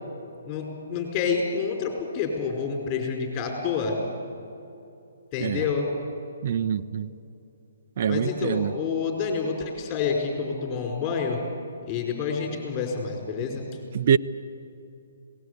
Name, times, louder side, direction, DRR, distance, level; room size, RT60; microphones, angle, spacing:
voice 1, 0.5-4.0 5.3-5.9 8.1-11.4 11.9-13.6, left 5 dB, 25° left, 4.9 m, -28 dB
voice 2, 6.4-7.1 8.0-8.7 13.9-14.2, right 8 dB, 50° right, 0.7 m, -24 dB
26.5 x 18.5 x 8.2 m
hypercardioid pair, 145°, 0 cm